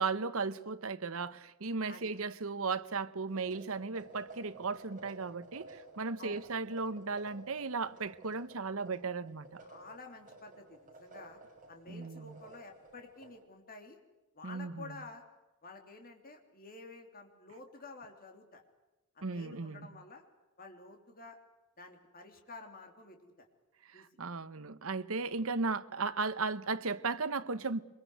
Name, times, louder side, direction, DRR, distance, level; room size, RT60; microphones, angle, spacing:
voice 1, 0.0-9.6 11.9-12.4 14.4-15.0 19.2-19.9 23.9-27.8, right 4 dB, 65° right, 1.0 m, -36 dB
sound 1, 3.3-13.4, right 2 dB, 35° right, 6.5 m, -54 dB
voice 2, 9.6-11.4 11.7-14.0 14.3-15.2 15.6-18.6 19.2-20.2 20.6-21.4 21.8-23.5 23.9-24.1, left 3 dB, 40° left, 3.4 m, -51 dB
24.5 x 22.5 x 8.0 m
head